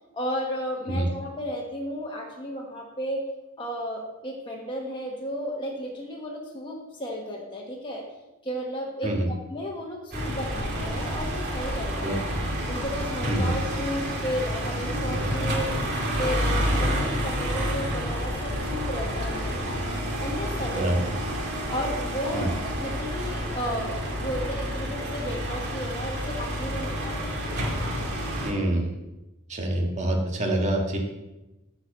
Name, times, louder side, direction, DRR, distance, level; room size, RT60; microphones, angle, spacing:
voice 1, 0.1-3.2 3.6-8.0 8.4-9.1 9.5-12.2 12.7-15.7 16.2-16.5 16.7-19.8 20.2-20.9 21.7-27.5, equal, 25° left, -2 dB, 1.4 m, -33 dB
sound 1, 10.1-28.5, equal, 50° right, 2.4 m, -29 dB
voice 2, 12.0-12.4 13.2-13.5 20.7-21.0 22.3-22.5 28.4-29.0 29.5-31.0, right 1 dB, 35° right, 1 dB, 1.7 m, -26 dB
9.7 x 4.8 x 7.3 m, 1.0 s
head